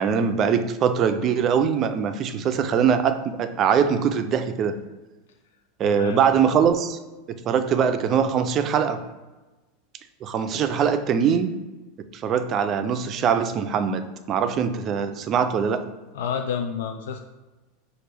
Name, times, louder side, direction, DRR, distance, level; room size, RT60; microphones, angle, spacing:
voice 1, 0.0-4.8 5.8-7.0 7.4-9.0 10.2-11.5 12.0-15.9, right 7 dB, 35° right, 9 dB, 0.4 m, -22 dB
voice 2, 5.8-6.2 16.1-17.2, left 7 dB, 80° left, 5 dB, 0.4 m, -29 dB
5.8 x 2.5 x 3.3 m, 1.1 s
supercardioid pair, 135°, 0 cm